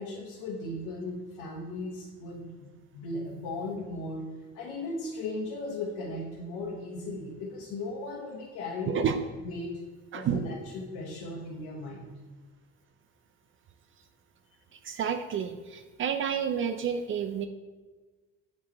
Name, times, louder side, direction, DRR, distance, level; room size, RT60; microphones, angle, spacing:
voice 1, 0.0-4.2 4.5-9.1 9.4-9.7 10.1-12.1, left 2 dB, 85° left, -3 dB, 1.1 m, -37 dB
voice 2, 8.9-9.2 10.1-10.6 14.7-17.5, right 8 dB, 45° right, 8 dB, 0.4 m, -30 dB
7.0 x 4.7 x 4.1 m, 1.3 s
cardioid pair, 100°, 30 cm